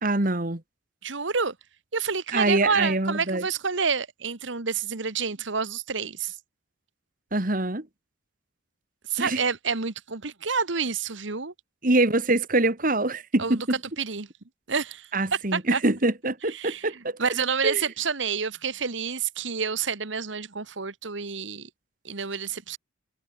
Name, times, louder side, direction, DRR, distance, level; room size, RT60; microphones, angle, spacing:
voice 1, 0.0-0.6 2.3-3.5 7.3-7.9 9.2-9.4 11.8-13.6 15.1-17.2 17.6-17.8, right 2 dB, 45° right, 2.0 m, -24 dB
voice 2, 1.0-1.5 1.9-6.4 9.1-11.5 13.4-14.3 14.7-15.1 15.5-15.8 16.5-16.9 17.2-21.7 22.0-22.8, right 5 dB, 70° right, 1.5 m, -28 dB
head